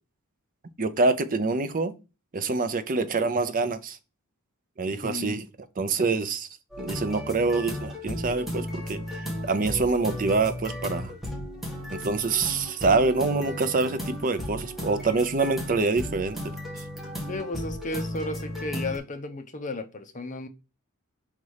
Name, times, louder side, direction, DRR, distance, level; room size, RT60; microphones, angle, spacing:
voice 1, 0.8-2.0 2.3-4.0 4.8-5.5 5.8-6.5 6.8-9.0 9.4-11.1 11.9-16.4, right 3 dB, 40° right, 0.6 m, -25 dB
voice 2, 5.0-5.4 17.3-20.5, left 2 dB, 35° left, 0.8 m, -34 dB
sound 1, 6.7-19.0, left 1 dB, ahead, 1.8 m, -35 dB
5.3 x 4.1 x 4.7 m
head